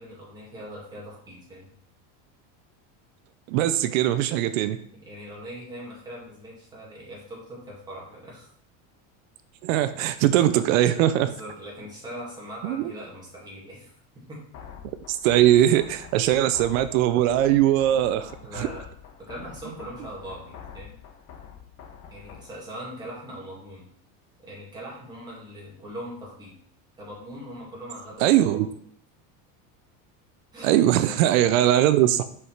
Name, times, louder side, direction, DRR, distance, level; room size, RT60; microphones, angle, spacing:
voice 1, 0.0-1.7 5.0-8.5 10.3-10.4 11.2-13.9 14.3-14.4 17.9-18.8 19.2-20.9 22.1-23.9 24.4-26.6 27.0-28.6 30.5-31.3, equal, 10° right, -5 dB, 2.2 m, -41 dB
voice 2, 3.5-4.8 9.6-11.3 12.6-12.9 15.1-18.7 28.2-28.7 30.6-32.2, right 12 dB, 85° right, 11 dB, 0.6 m, -21 dB
sound 1, 14.5-22.5, left 8 dB, 35° left, 1.1 m, -45 dB
5.6 x 4.8 x 5.8 m, 0.66 s
cardioid pair, 180°, 40 cm